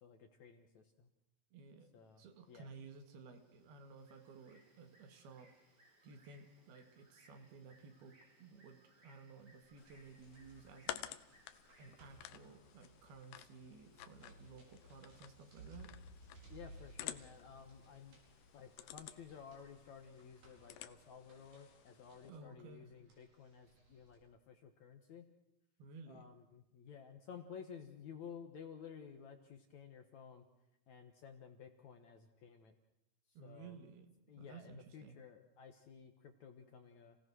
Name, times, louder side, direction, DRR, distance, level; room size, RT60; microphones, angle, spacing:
voice 1, 0.0-1.1 1.9-2.7 16.5-18.2 18.5-25.3 26.1-30.5 30.9-32.7 33.3-33.8 34.3-37.2, left 7 dB, 60° left, 5 dB, 2.1 m, -54 dB
voice 2, 1.5-1.9 2.2-5.5 6.0-8.1 8.4-11.1 11.8-15.9 22.3-22.9 25.8-26.3 33.4-34.1 34.4-35.2, right 4 dB, 75° right, 6 dB, 3.8 m, -55 dB
Bird, 2.0-20.7, right 1 dB, 25° right, 3.8 m, -72 dB
sound 1, 9.8-22.3, left 13 dB, 85° left, 2.9 m, -53 dB
sound 2, 10.1-24.2, right 1 dB, 55° right, 6.5 m, -62 dB
29.0 x 17.0 x 6.3 m, 0.87 s
omnidirectional pair, 4.6 m